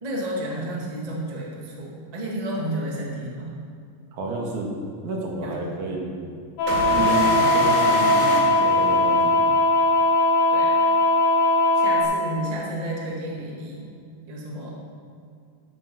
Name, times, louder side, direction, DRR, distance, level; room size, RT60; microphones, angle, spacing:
voice 1, 0.0-3.5 5.4-5.7 6.8-7.0 10.5-10.8 11.7-13.9 14.3-14.7, right 1 dB, 30° right, -3 dB, 0.7 m, -31 dB
voice 2, 4.1-4.7 5.0-6.1 6.9-9.4, right 2 dB, 65° right, -1 dB, 2.7 m, -30 dB
sound 1, 6.6-12.0, left 2 dB, 65° left, 2.2 m, -19 dB
sound 2, 6.7-9.5, right 2 dB, 90° right, 3.4 m, -28 dB
12.5 x 6.6 x 6.0 m, 2.4 s
omnidirectional pair, 4.0 m